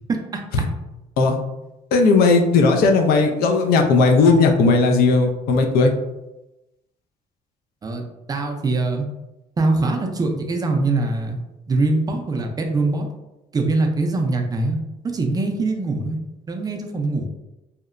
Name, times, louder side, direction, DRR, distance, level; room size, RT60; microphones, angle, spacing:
voice 1, 0.1-0.4 7.8-9.1 9.6-11.4 11.7-13.1 13.5-14.8 15.1-16.2 16.5-17.3, right 3 dB, 25° right, 3 dB, 0.4 m, -22 dB
voice 2, 1.9-5.9, left 3 dB, 80° left, 3 dB, 0.4 m, -16 dB
2.8 x 2.1 x 2.4 m, 0.98 s
cardioid pair, 105°, 15 cm